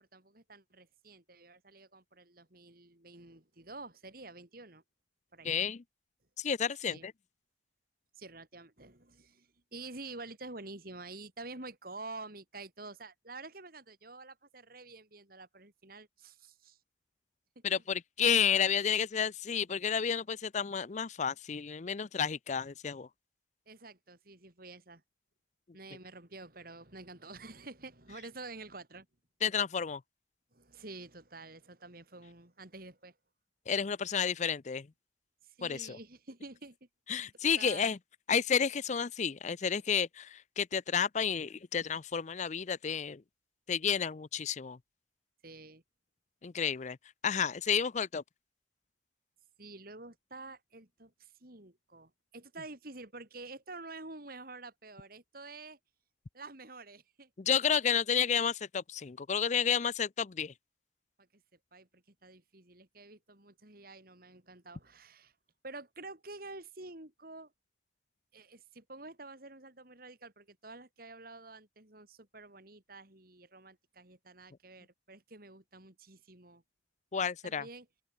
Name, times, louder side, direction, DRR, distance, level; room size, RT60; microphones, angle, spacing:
voice 1, 0.0-4.8 5.3-5.5 6.9-7.1 8.2-16.8 17.6-17.8 23.7-25.0 25.7-29.1 30.5-33.2 35.4-36.9 37.6-38.0 45.4-45.8 49.6-55.8 56.3-57.3 61.2-61.4 61.7-65.3 65.6-67.5 68.3-76.6 77.4-77.9, right 3 dB, 55° right, 4.0 m, -49 dB
voice 2, 5.4-5.8 6.4-7.1 17.6-23.1 29.4-30.0 33.7-34.9 35.6-36.0 37.1-38.0 38.3-43.2 43.7-44.8 46.4-47.0 47.2-48.2 57.4-60.5 77.1-77.6, left 7 dB, 40° left, 0.5 m, -31 dB
open air
head